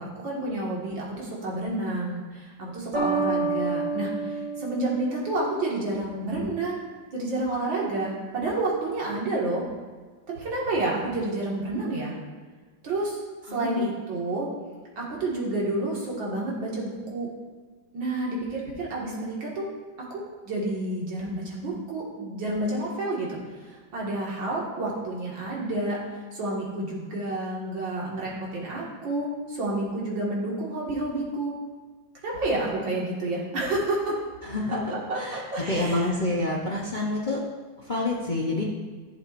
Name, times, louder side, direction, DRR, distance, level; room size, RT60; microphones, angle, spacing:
voice 1, 0.0-6.8 7.1-9.6 10.4-12.1 12.8-13.2 13.5-14.5 15.0-17.3 17.9-19.6 20.1-23.4 23.6-26.0 26.3-31.5 32.2-34.1 34.7-36.1, right 2 dB, 80° right, -4 dB, 2.8 m, -29 dB
sound 1, 2.9-5.8, right 3 dB, 45° right, 2.5 m, -29 dB
voice 2, 13.5-14.0 34.4-34.8 35.1-37.4 37.9-38.6, left 2 dB, 35° left, -3 dB, 0.9 m, -28 dB
14.5 x 7.1 x 2.6 m, 1.4 s
omnidirectional pair, 2.0 m